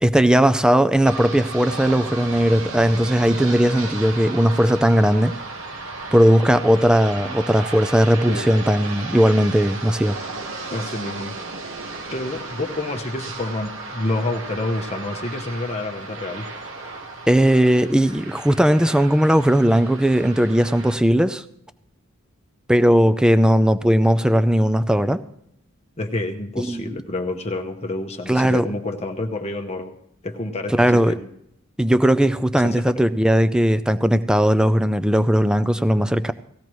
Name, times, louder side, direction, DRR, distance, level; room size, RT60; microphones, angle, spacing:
voice 1, 0.0-5.3 6.1-10.2 17.3-21.4 22.7-25.2 26.6-26.9 28.3-28.7 30.8-31.2 31.8-36.3, equal, 5° right, 12 dB, 0.4 m, -18 dB
sound 1, 1.0-20.9, right 3 dB, 60° right, 1.4 m, -34 dB
voice 2, 10.7-11.3 12.1-16.4 26.0-29.9 30.2-31.3 32.5-32.9, left 2 dB, 30° left, 4 dB, 0.9 m, -28 dB
18.5 x 15.0 x 3.1 m, 0.74 s
head